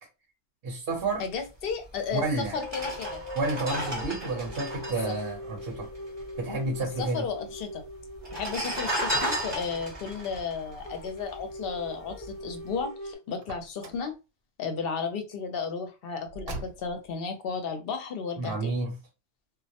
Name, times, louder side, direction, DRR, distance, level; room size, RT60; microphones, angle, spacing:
voice 1, 0.6-1.2 2.1-2.6 3.3-5.9 6.4-7.3 18.4-18.9, right 3 dB, 55° right, 0.8 m, -30 dB
voice 2, 1.2-3.2 5.1-5.2 7.0-7.8 8.3-14.1 14.6-18.7, left 5 dB, 60° left, 0.7 m, -34 dB
sound 1, 1.9-2.0 2.6-6.3 6.5-6.6 6.8-7.5 8.2-11.6 12.1-12.3, equal, 25° right, 0.6 m, -33 dB
sound 2, 2.5-9.8 10.2-10.3 10.5-10.6 10.8-13.2, equal, 15° left, 0.4 m, -42 dB
Car, 13.4-14.1 16.3-17.1, right 2 dB, 90° right, 0.9 m, -41 dB
2.2 x 2.1 x 2.7 m
omnidirectional pair, 1.3 m